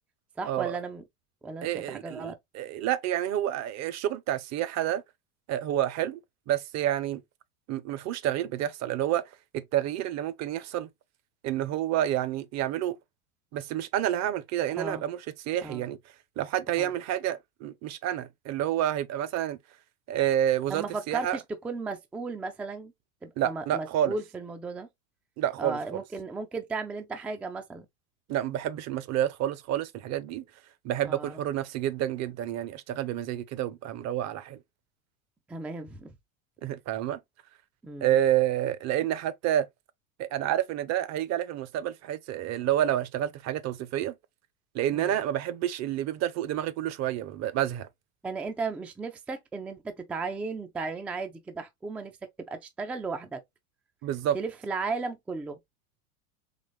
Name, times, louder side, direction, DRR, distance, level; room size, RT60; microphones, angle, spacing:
voice 1, 0.4-1.0 1.4-2.4 14.8-15.0 15.6-15.9 16.7-16.9 20.7-22.9 23.2-24.9 25.6-27.9 31.1-31.4 35.5-36.1 37.8-38.2 44.9-45.2 48.2-52.1 52.5-53.4 54.3-55.6, right 4 dB, 5° right, 0.3 m, -35 dB
voice 2, 1.6-5.0 5.5-6.2 6.5-7.2 7.7-9.2 9.5-10.9 11.4-13.0 13.5-16.0 16.4-19.6 20.1-21.4 23.4-24.2 25.4-26.0 28.3-30.4 30.8-34.6 36.6-37.2 38.0-39.7 40.2-44.1 44.7-47.9 54.0-54.4, right 12 dB, 35° right, 0.7 m, -29 dB
4.1 x 3.0 x 3.1 m
hypercardioid pair, 95°, 44 cm